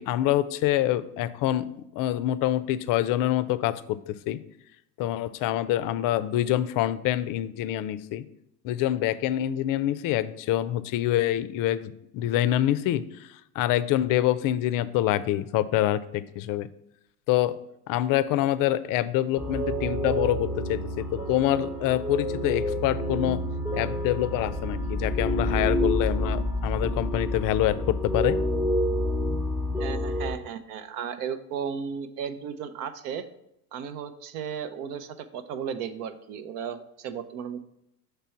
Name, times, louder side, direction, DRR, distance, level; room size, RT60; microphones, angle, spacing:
voice 1, 0.0-4.4 5.0-8.2 8.6-16.7 17.3-17.6 17.9-23.4 23.7-28.4, left 13 dB, 45° left, 16 dB, 0.4 m, -26 dB
sound 1, 19.4-30.3, left 1 dB, 5° right, 0.5 m, -28 dB
voice 2, 29.8-33.2 33.7-37.6, right 7 dB, 70° right, 11 dB, 0.7 m, -35 dB
6.0 x 3.3 x 5.7 m, 0.80 s
hypercardioid pair, 80°, 47 cm